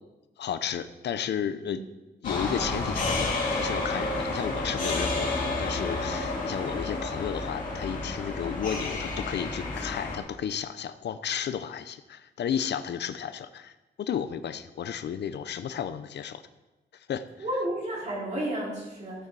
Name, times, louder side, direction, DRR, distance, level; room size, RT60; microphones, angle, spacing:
voice 1, 0.4-1.8 2.2-16.4 16.9-17.3, left 8 dB, 75° left, 12 dB, 0.6 m, -33 dB
sound 1, 2.2-10.2, left 2 dB, 50° left, 2.6 m, -30 dB
voice 2, 17.4-19.3, right 1 dB, 40° right, -5 dB, 4.4 m, -32 dB
15.0 x 7.5 x 4.7 m, 1.1 s
wide cardioid pair, 170°, 18 cm